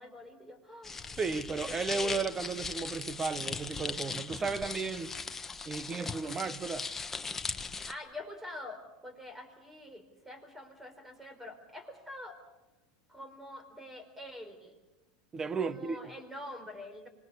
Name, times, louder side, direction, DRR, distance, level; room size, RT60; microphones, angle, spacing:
voice 1, 0.0-1.2 1.7-2.2 7.8-12.4 13.1-14.8 15.5-17.1, left 1 dB, 10° right, 4.4 m, -46 dB
sound 1, 0.8-7.9, left 4 dB, 15° left, 1.4 m, -39 dB
voice 2, 1.2-5.2 5.6-6.9 15.3-16.0, right 4 dB, 25° right, 1.2 m, -34 dB
25.5 x 20.5 x 6.9 m
hypercardioid pair, 90°, 2 cm